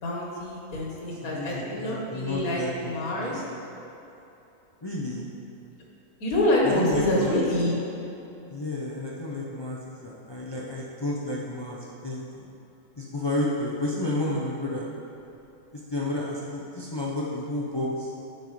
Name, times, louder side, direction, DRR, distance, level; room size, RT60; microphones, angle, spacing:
voice 1, 0.0-3.4 6.2-7.8, left 1 dB, 85° left, -4 dB, 1.7 m, -26 dB
voice 2, 1.2-3.4 4.8-5.3 6.6-7.4 8.5-12.5 13.0-14.9 15.7-18.1, left 2 dB, 45° left, -5 dB, 0.3 m, -31 dB
9.0 x 5.3 x 3.2 m, 2.9 s
omnidirectional pair, 1.5 m